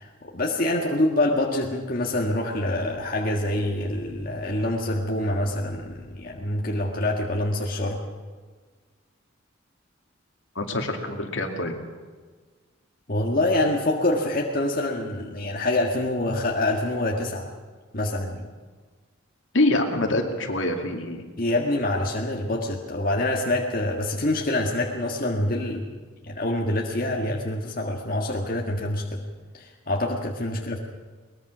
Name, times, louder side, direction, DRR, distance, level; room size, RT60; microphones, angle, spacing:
voice 1, 0.0-8.0 13.1-17.5 17.9-18.5 21.4-25.9 26.2-29.2 29.5-30.8, left 1 dB, 45° left, 0 dB, 1.8 m, -26 dB
voice 2, 10.5-11.8 19.5-21.2, left 1 dB, 70° left, 3 dB, 2.5 m, -25 dB
22.0 x 20.5 x 6.2 m, 1.5 s
head